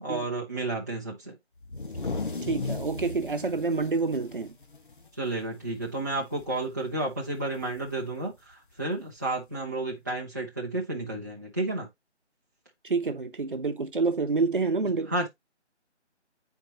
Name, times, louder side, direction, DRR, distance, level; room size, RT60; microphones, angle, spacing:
voice 1, 0.0-1.3 5.2-11.9 15.1-15.3, right 2 dB, 15° right, 0.7 m, -31 dB
sound 1, 1.6-5.3 5.7-5.8 6.2-6.6 7.8-7.9 8.9-9.0, left 3 dB, 45° left, 1.1 m, -36 dB
voice 2, 2.4-4.6 12.8-15.1, right 4 dB, 45° right, 0.9 m, -28 dB
8.6 x 4.5 x 2.8 m
figure-of-eight pair, 155°, 35 cm